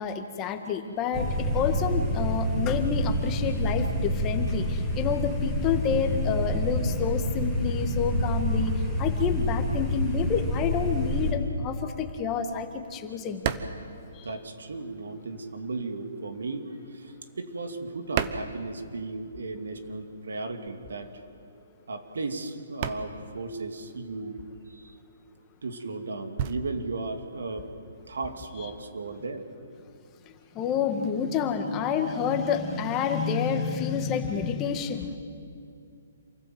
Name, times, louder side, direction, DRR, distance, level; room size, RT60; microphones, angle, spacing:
voice 1, 0.0-13.5 14.1-14.3 30.5-35.2, left 7 dB, 25° left, 6 dB, 1.8 m, -29 dB
sound 1, 1.1-11.3, equal, 10° right, 3.4 m, -27 dB
sound 2, 13.4-15.0 15.2-19.4 19.6-28.4, right 8 dB, 40° right, 1.2 m, -36 dB
voice 2, 14.2-21.1 21.9-24.4 24.7-25.0 25.6-27.7 28.1-29.5, right 3 dB, 80° right, 6 dB, 2.4 m, -35 dB
27.5 x 15.0 x 7.9 m, 2.4 s
hypercardioid pair, 145°, 0 cm